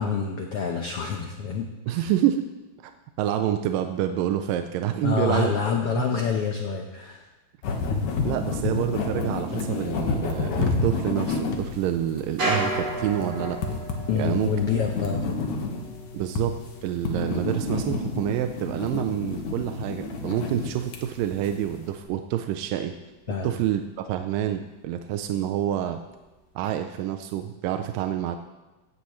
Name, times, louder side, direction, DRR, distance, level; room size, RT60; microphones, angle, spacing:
voice 1, 0.0-2.1 5.0-7.2 14.1-15.2 23.3-23.5, left 6 dB, 85° left, 2 dB, 1.2 m, -27 dB
voice 2, 1.9-2.4 2.8-2.9 3.2-5.5 6.0-6.1 8.2-13.6 14.2-14.5 16.1-23.0 23.4-26.0 26.6-28.4, right 11 dB, 80° right, 7 dB, 2.2 m, -27 dB
sound 1, 7.6-21.9, left 3 dB, 65° left, 2.7 m, -30 dB
sound 2, 12.4-21.9 22.2-23.8 24.0-24.1 24.5-25.0 25.3-26.5 27.0-27.1, right 1 dB, 45° right, 6.1 m, -37 dB
16.5 x 15.5 x 3.1 m, 1.1 s
omnidirectional pair, 4.1 m